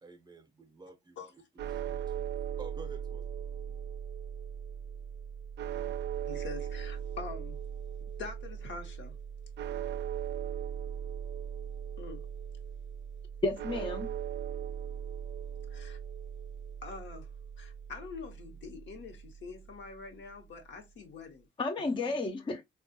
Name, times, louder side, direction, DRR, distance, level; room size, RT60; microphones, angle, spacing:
voice 1, 0.0-1.2 1.6-2.3 2.6-3.3 3.7-3.8, right 4 dB, 20° right, 0.6 m, -50 dB
sound 1, 1.6-19.8, right 8 dB, 65° right, 0.4 m, -39 dB
voice 2, 6.3-7.6 8.2-9.2 12.0-12.3 15.7-16.0 16.8-17.3 17.6-21.5 21.8-22.1, left 4 dB, 70° left, 1.0 m, -45 dB
voice 3, 13.4-14.1 21.6-22.6, left 2 dB, 25° left, 0.4 m, -32 dB
3.5 x 2.3 x 2.6 m
cardioid pair, 90°, 20 cm